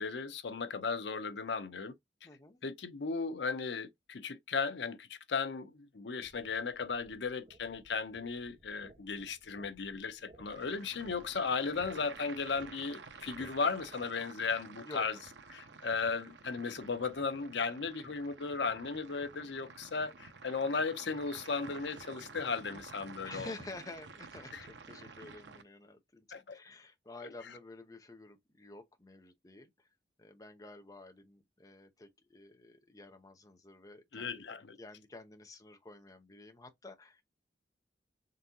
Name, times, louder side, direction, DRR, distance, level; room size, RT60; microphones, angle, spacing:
voice 1, 0.0-1.9 2.6-15.2 15.5-23.5 24.5-24.7 26.3-26.6 34.1-34.8, left 4 dB, 85° left, 0.7 m, -36 dB
voice 2, 2.2-2.6 14.8-15.1 23.2-29.9 30.2-37.2, left 2 dB, 20° left, 0.7 m, -50 dB
sound 1, 6.2-13.9, right 2 dB, 35° right, 0.9 m, -60 dB
sound 2, 10.5-25.6, right 4 dB, 90° right, 0.8 m, -51 dB
3.8 x 3.7 x 2.8 m
head